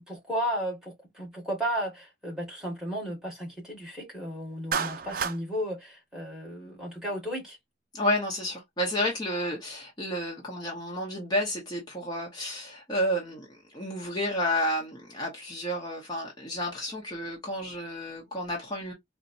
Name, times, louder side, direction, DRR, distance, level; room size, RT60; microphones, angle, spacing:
voice 1, 0.0-7.6, equal, 5° right, 1.5 m, -34 dB
Clapping, 4.7-5.4, right 6 dB, 50° right, 0.4 m, -29 dB
voice 2, 7.9-18.9, left 1 dB, 20° left, 0.9 m, -31 dB
4.1 x 2.2 x 2.5 m
head